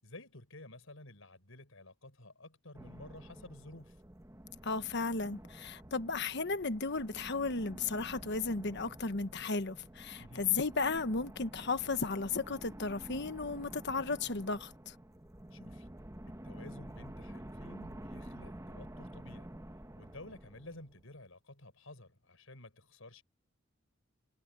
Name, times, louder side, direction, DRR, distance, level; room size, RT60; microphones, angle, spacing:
voice 1, 0.0-4.0 10.2-10.5 15.5-15.9 16.3-19.5 20.0-23.2, left 2 dB, 80° left, 5.5 m, -52 dB
sound 1, 2.7-21.2, right 1 dB, 15° right, 1.3 m, -50 dB
voice 2, 4.6-14.9, left 4 dB, 60° left, 1.2 m, -34 dB
head